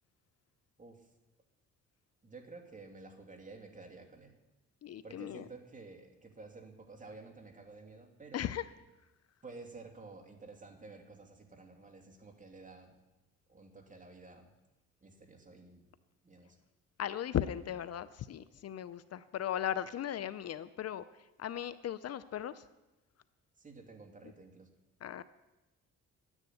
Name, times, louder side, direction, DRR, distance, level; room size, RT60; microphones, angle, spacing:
voice 1, 2.2-4.4 5.0-8.4 9.4-13.0 13.5-14.5 15.0-15.9 16.2-16.6 23.6-24.7, right 3 dB, 25° right, 2 dB, 2.8 m, -52 dB
voice 2, 4.8-5.4 8.3-8.7 17.0-21.0 21.4-22.6 25.0-25.2, left 10 dB, 55° left, 15 dB, 0.6 m, -37 dB
11.5 x 9.9 x 9.4 m, 1.0 s
cardioid pair, 90°, 30 cm